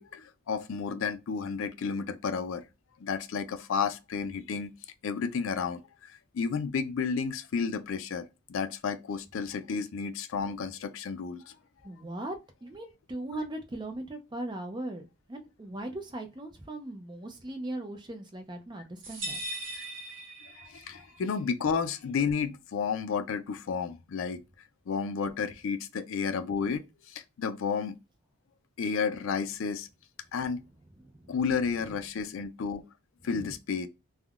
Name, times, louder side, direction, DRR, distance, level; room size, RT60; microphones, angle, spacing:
voice 1, 0.0-2.6 3.0-4.7 5.0-11.5 19.7-19.8 20.5-24.4 24.9-27.9 28.8-29.9 30.3-30.6 31.3-32.8 33.2-33.9, left 5 dB, 70° left, 0.4 m, -32 dB
voice 2, 11.8-12.4 12.6-19.4 31.0-31.3 33.3-33.5, right 1 dB, 20° right, 0.4 m, -39 dB
sound 1, 19.0-21.0, right 1 dB, 65° right, 1.3 m, -38 dB
3.4 x 2.2 x 2.3 m
head